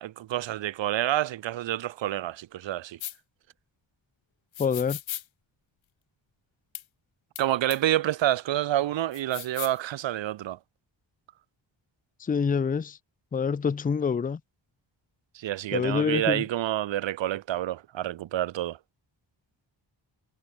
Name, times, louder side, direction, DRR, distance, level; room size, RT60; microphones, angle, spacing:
voice 1, 0.0-3.0 7.4-10.6 15.3-18.8, right 13 dB, 75° right, 0.7 m, -28 dB
sound 1, 3.0-3.2 4.5-5.2 6.7-6.8 7.4-7.5 7.7-7.8 9.1-9.8, left 11 dB, 85° left, 1.3 m, -37 dB
voice 2, 4.6-5.0 12.2-13.0 13.3-14.4 15.7-16.4, left 6 dB, 20° left, 0.4 m, -26 dB
wide cardioid pair, 155°, 45 cm